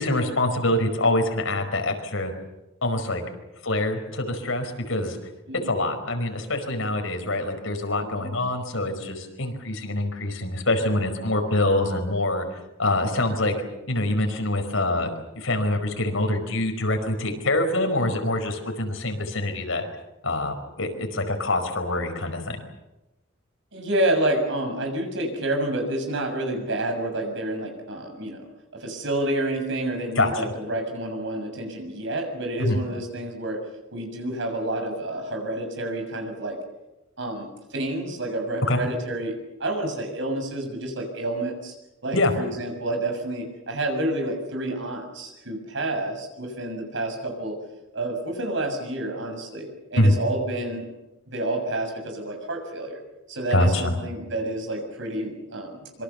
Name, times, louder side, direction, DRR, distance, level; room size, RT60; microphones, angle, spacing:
voice 1, 0.0-2.3 2.8-3.2 3.6-5.2 5.6-12.4 12.8-13.5 13.9-15.1 15.3-19.9 20.2-22.6 30.1-30.4 32.6-32.8 38.6-38.8 42.1-42.3 50.0-50.1 53.5-53.9, left 1 dB, 85° left, 5 dB, 5.0 m, -25 dB
voice 2, 8.0-8.3 17.3-17.4 23.7-28.4 28.7-33.6 33.9-36.6 37.2-39.3 39.6-41.7 42.0-47.6 47.9-50.9 51.3-53.0 53.3-56.0, right 1 dB, 65° right, 4 dB, 6.9 m, -29 dB
26.0 x 24.0 x 7.0 m, 0.97 s
head